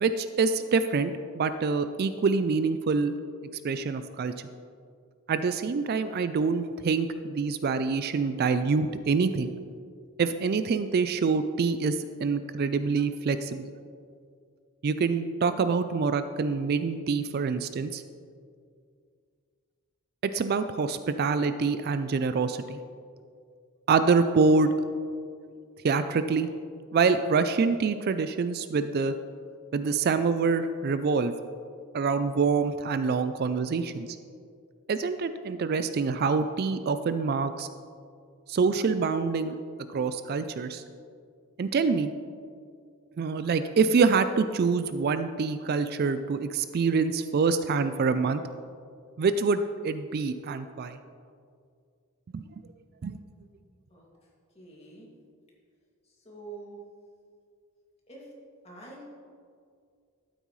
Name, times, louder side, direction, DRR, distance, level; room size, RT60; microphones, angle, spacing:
voice 1, 0.0-3.1 3.6-4.3 5.3-9.5 10.2-13.7 14.8-18.0 20.2-22.8 23.9-24.7 25.8-26.5 26.9-29.1 29.7-31.3 31.9-34.1 34.9-37.7 38.5-39.6 39.9-40.8 41.6-42.1 43.2-48.4 49.2-51.0 52.3-52.4 53.0-53.2, right 4 dB, 45° right, 11 dB, 0.3 m, -26 dB
voice 2, 54.6-55.1 56.2-56.8 58.1-58.2 58.6-59.0, right 3 dB, 30° left, -4 dB, 2.2 m, -45 dB
12.0 x 9.1 x 3.1 m, 2.2 s
head